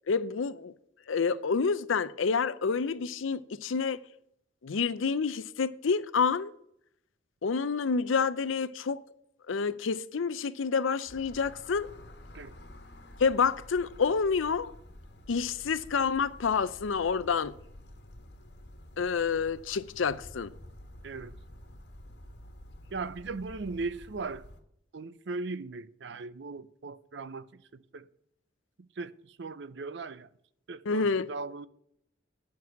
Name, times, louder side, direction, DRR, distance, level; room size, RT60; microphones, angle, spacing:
voice 1, 0.1-0.7 1.1-4.0 4.6-6.5 7.4-9.0 9.5-11.9 13.2-14.7 15.3-17.5 19.0-20.5 30.9-31.3, left 5 dB, 90° left, 0.6 m, -28 dB
sound 1, 11.1-24.6, left 1 dB, 60° left, 1.4 m, -50 dB
voice 2, 21.0-21.4 22.9-24.4 24.9-27.5 27.9-28.1 29.0-30.3 30.7-31.7, right 3 dB, 65° right, 0.5 m, -38 dB
9.5 x 6.1 x 8.3 m
head